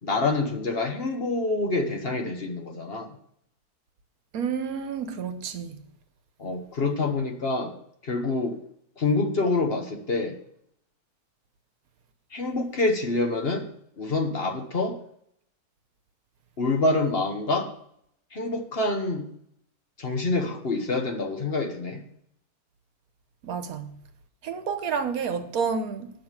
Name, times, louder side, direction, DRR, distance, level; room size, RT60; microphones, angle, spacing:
voice 1, 0.0-3.2 6.4-7.8 8.0-8.6 9.0-10.4 12.3-13.7 14.0-15.0 16.6-17.7 18.3-19.3 20.0-22.1, left 3 dB, 45° left, 1.2 m, -26 dB
voice 2, 4.3-5.8 23.4-23.9 24.4-26.1, right 6 dB, 75° right, 1.4 m, -30 dB
9.9 x 6.5 x 7.3 m
omnidirectional pair, 1.6 m